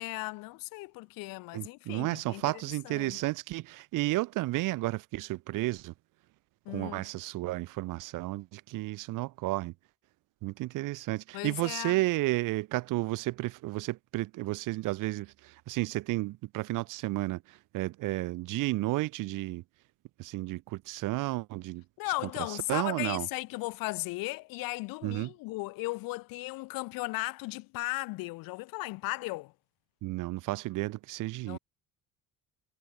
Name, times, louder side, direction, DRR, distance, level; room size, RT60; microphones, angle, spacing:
voice 1, 0.0-3.2 6.6-7.1 11.3-12.0 22.0-29.5 31.5-31.6, left 23 dB, 80° left, 1.5 m, -36 dB
voice 2, 1.5-5.9 6.7-9.7 10.4-19.6 20.2-21.8 22.7-23.3 25.0-25.3 30.0-31.6, right 19 dB, 65° right, 1.8 m, -32 dB
cardioid pair, 165°, 34 cm